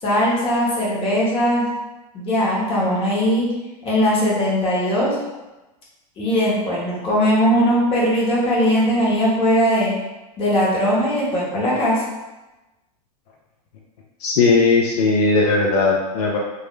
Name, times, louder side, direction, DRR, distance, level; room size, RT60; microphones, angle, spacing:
voice 1, 0.0-1.7 2.1-3.5 3.8-5.2 6.2-9.9 10.4-12.0, equal, 30° left, -6 dB, 0.9 m, -19 dB
voice 2, 14.2-16.4, left 3 dB, 75° left, -2 dB, 0.5 m, -17 dB
2.3 x 2.1 x 3.0 m, 1.1 s
hypercardioid pair, 120°, 20 cm